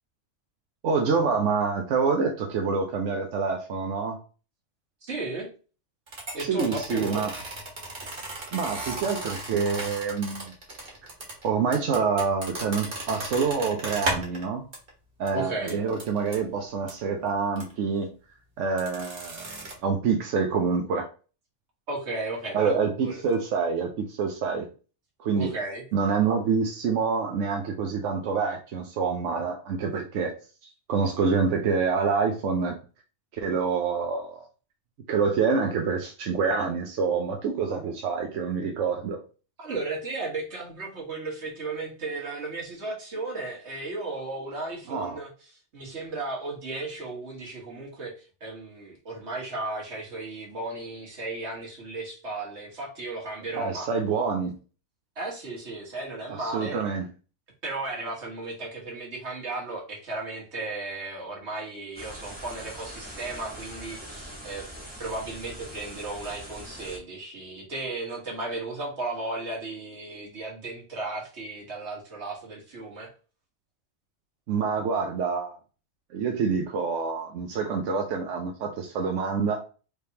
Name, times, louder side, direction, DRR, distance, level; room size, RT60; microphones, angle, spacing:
voice 1, 0.8-4.2 6.5-7.3 8.5-10.5 11.4-14.6 15.2-18.1 18.6-19.5 19.8-21.1 22.5-24.7 25.2-25.5 25.9-30.4 30.6-32.8 33.4-34.4 35.1-39.2 44.9-45.2 53.5-54.5 56.4-57.1 74.5-75.6 76.1-79.6, right 5 dB, 90° right, 1.0 m, -26 dB
voice 2, 5.1-5.5 6.3-7.3 15.3-15.8 21.9-23.2 25.3-25.8 39.6-53.9 55.2-56.8 57.6-64.7 65.0-73.1, right 2 dB, 65° right, 1.8 m, -35 dB
sound 1, 6.1-14.4 14.7-14.9 15.3-15.4 15.7-16.4 16.9-17.0 17.6-17.7 18.8-19.7, right 2 dB, 45° right, 1.6 m, -35 dB
sound 2, 62.0-67.0, equal, 10° right, 1.4 m, -42 dB
4.8 x 3.4 x 2.8 m
omnidirectional pair, 1.2 m